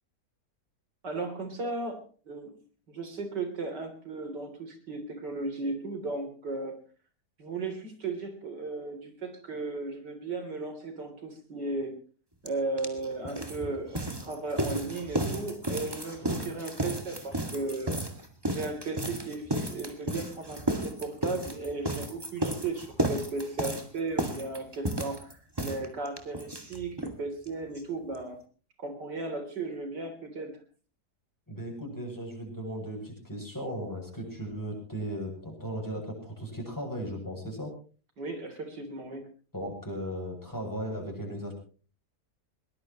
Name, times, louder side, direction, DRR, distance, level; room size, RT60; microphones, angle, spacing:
voice 1, 1.0-2.5 2.9-6.7 7.4-11.9 12.4-17.9 18.5-28.4 28.8-30.6 38.2-39.2, right 3 dB, 85° right, 6 dB, 4.1 m, -35 dB
sound 1, 12.5-12.6 12.8-27.2 27.4-27.5 27.8-27.9 28.1-28.2, right 1 dB, 15° right, 2.1 m, -33 dB
voice 2, 31.5-37.7 39.5-41.5, equal, 10° left, 0 dB, 8.0 m, -37 dB
22.0 x 19.5 x 3.1 m, 0.39 s
omnidirectional pair, 1.8 m